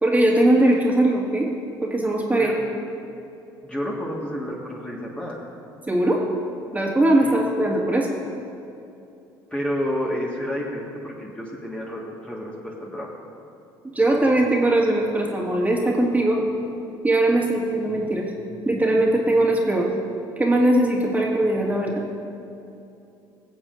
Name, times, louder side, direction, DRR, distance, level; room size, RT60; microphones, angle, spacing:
voice 1, 0.0-1.5 1.8-2.5 5.9-6.2 6.7-8.1 13.9-16.4 17.0-18.3 18.7-19.9 20.4-22.0, right 1 dB, 15° right, -2 dB, 1.9 m, -20 dB
voice 2, 3.6-5.4 7.2-7.4 9.5-13.1, equal, 10° left, -4 dB, 1.6 m, -30 dB
21.5 x 7.2 x 2.6 m, 2.7 s
hypercardioid pair, 65°, 11 cm